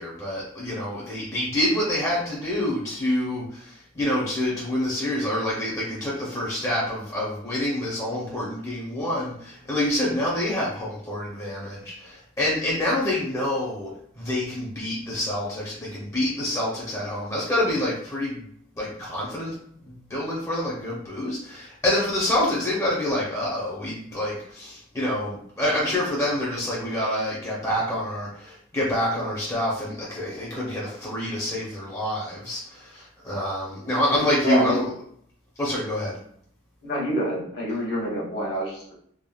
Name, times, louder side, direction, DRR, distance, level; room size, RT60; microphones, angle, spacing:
voice 1, 0.0-13.9 14.2-18.4 18.7-19.6 19.8-34.9 35.6-36.2, left 1 dB, 15° left, -6 dB, 0.6 m, -27 dB
voice 2, 34.1-34.8 36.8-38.9, right 1 dB, 55° left, -3 dB, 1.1 m, -27 dB
3.4 x 2.1 x 2.2 m, 0.65 s
head